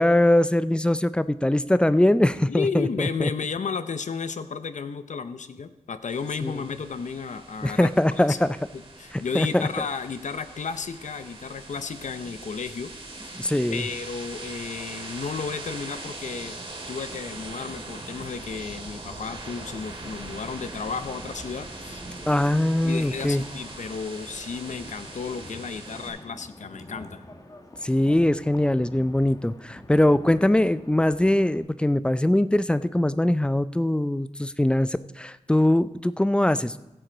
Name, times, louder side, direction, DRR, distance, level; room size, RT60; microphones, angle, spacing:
voice 1, 0.0-3.3 6.4-6.5 7.6-8.5 9.3-9.7 13.3-13.8 22.3-23.4 27.8-36.8, left 1 dB, 5° left, 14 dB, 0.4 m, -22 dB
voice 2, 2.5-7.9 8.2-8.4 9.0-12.9 13.2-13.4 13.7-16.6 16.9-22.0 22.8-27.2, left 5 dB, 70° left, 11 dB, 0.7 m, -33 dB
sound 1, 6.1-26.1, right 2 dB, 40° right, 2.4 m, -41 dB
Wind, 19.8-31.6, left 1 dB, 25° left, 1.2 m, -46 dB
16.0 x 7.9 x 3.9 m, 0.94 s
wide cardioid pair, 105°, 13 cm